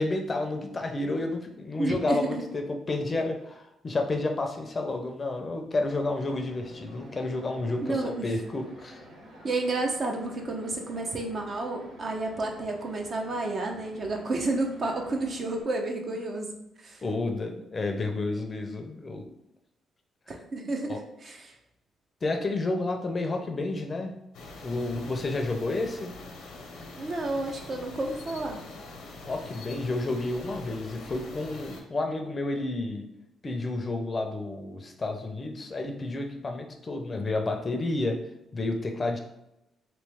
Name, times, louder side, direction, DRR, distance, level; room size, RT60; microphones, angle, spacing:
voice 1, 0.0-9.0 16.2-16.3 17.0-19.3 20.9-21.0 22.2-24.2 24.6-26.1 29.3-33.1 33.4-38.2 38.5-39.2, left 2 dB, 30° left, 4 dB, 0.5 m, -30 dB
voice 2, 1.8-2.4 7.8-8.3 9.4-16.5 16.8-17.0 20.3-21.5 27.0-28.6, right 2 dB, 45° right, 2 dB, 0.7 m, -31 dB
sound 1, 5.7-15.6, right 1 dB, 85° right, 1.1 m, -49 dB
sound 2, 24.3-31.8, left 2 dB, 80° left, 0.7 m, -44 dB
3.1 x 2.9 x 3.5 m, 0.86 s
cardioid pair, 90°, 0 cm